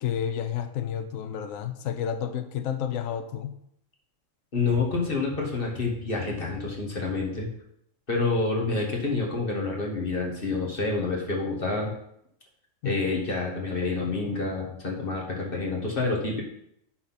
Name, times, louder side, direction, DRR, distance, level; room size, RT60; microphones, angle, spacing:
voice 1, 0.0-3.6 12.8-13.1, left 9 dB, 75° left, 1.1 m, -31 dB
voice 2, 4.5-7.5 8.1-11.9 12.8-16.4, left 3 dB, 40° left, 1.9 m, -28 dB
10.0 x 4.1 x 5.7 m
omnidirectional pair, 1.4 m